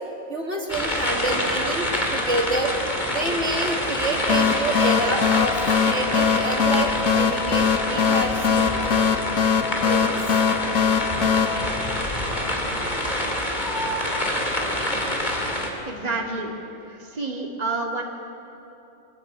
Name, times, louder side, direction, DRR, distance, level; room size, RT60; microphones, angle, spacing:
voice 1, 0.3-2.7 3.1-5.6 5.8-9.1 9.8-10.2, right 2 dB, 55° right, 1 dB, 2.6 m, -28 dB
sound 1, 0.7-15.7, left 1 dB, 30° left, 3.0 m, -26 dB
sound 2, 4.3-12.6, left 7 dB, 75° left, 1.3 m, -22 dB
voice 2, 15.9-16.5 16.9-18.0, right 3 dB, 30° right, 0 dB, 2.2 m, -29 dB
25.5 x 18.5 x 8.8 m, 3.0 s
omnidirectional pair, 1.4 m